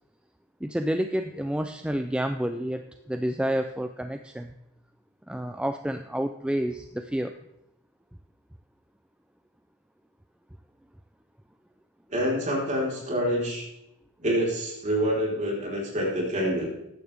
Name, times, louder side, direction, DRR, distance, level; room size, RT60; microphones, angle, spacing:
voice 1, 0.6-4.5 5.3-7.4, right 1 dB, 5° right, 7 dB, 0.4 m, -29 dB
voice 2, 12.1-13.7 14.2-16.7, equal, 35° right, -3 dB, 4.2 m, -27 dB
14.5 x 10.5 x 3.5 m, 0.86 s
head